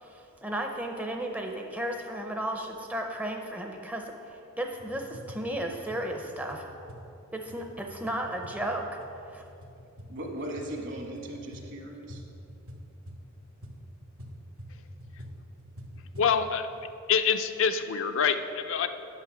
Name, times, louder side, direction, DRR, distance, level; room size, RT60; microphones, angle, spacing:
voice 1, 0.0-6.7 7.3-9.0 9.3-9.4, right 1 dB, 5° right, 2 dB, 0.5 m, -34 dB
sound 1, 4.7-16.4, equal, 75° right, 1.2 m, -47 dB
voice 2, 10.1-12.2, right 1 dB, 55° right, 2 dB, 1.5 m, -38 dB
voice 3, 16.2-16.7 17.1-18.9, left 6 dB, 65° left, 8 dB, 0.5 m, -26 dB
9.8 x 6.4 x 6.1 m, 2.8 s
head